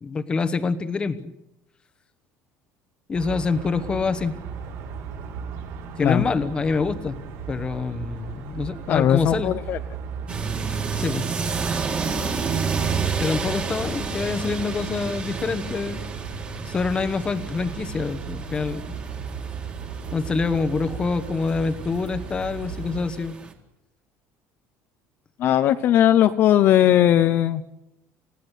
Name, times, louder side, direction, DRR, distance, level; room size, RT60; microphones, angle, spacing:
voice 1, 0.0-1.3 3.1-4.3 6.0-7.2 7.5-9.5 10.9-11.3 13.2-16.0 16.7-18.8 20.1-23.4, left 4 dB, 15° left, 12 dB, 1.2 m, -26 dB
sound 1, 3.1-23.0, right 6 dB, 70° right, 7.1 m, -36 dB
voice 2, 8.9-9.8 25.4-27.6, left 11 dB, 40° left, 9 dB, 0.9 m, -18 dB
sound 2, 10.3-23.5, right 5 dB, 20° right, 2.3 m, -31 dB
29.0 x 17.0 x 8.2 m, 0.87 s
cardioid pair, 180°, 6 cm